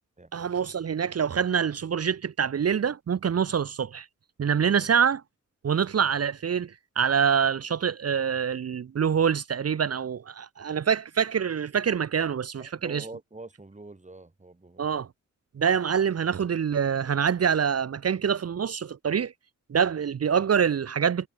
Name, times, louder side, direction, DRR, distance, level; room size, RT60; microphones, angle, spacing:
voice 1, 0.3-4.1 4.4-5.2 5.6-13.0 14.8-15.1 15.5-19.3 19.7-21.3, right 7 dB, 55° right, 0.8 m, -25 dB
voice 2, 12.6-14.9, right 2 dB, 25° right, 7.6 m, -44 dB
wide cardioid pair, 100°, 30 cm